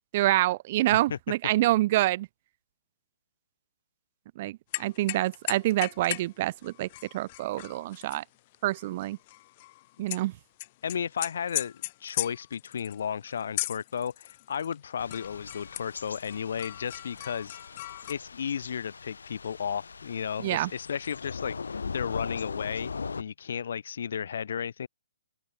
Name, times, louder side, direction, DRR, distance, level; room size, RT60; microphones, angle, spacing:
voice 1, 0.1-2.3 4.4-6.9 7.1-8.2 8.6-9.2 10.0-10.3 20.4-20.7, right 16 dB, 40° right, 0.3 m, -26 dB
sound 1, 4.7-6.3 6.6-10.2 10.6-14.8 15.1-18.1, left 18 dB, 40° left, 0.5 m, -38 dB
voice 2, 10.8-17.6 18.1-22.9 23.2-24.9, left 7 dB, 65° left, 1.4 m, -34 dB
Thunder / Rain, 15.0-23.2, left 5 dB, 85° left, 3.2 m, -40 dB
open air
hypercardioid pair, 145°, 0 cm